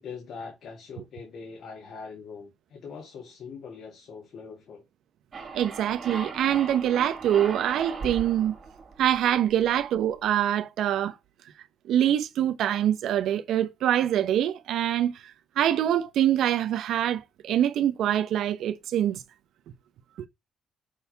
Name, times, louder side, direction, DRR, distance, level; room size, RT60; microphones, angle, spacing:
voice 1, 0.0-4.8, left 5 dB, 70° left, 2.1 m, -42 dB
sound 1, 5.3-9.8, right 4 dB, 45° right, 2.5 m, -38 dB
voice 2, 5.5-8.5 9.0-11.1 11.9-15.1 15.6-19.2 20.2-20.3, right 11 dB, 80° right, 0.8 m, -24 dB
6.3 x 3.5 x 5.6 m
cardioid pair, 90°, 0 cm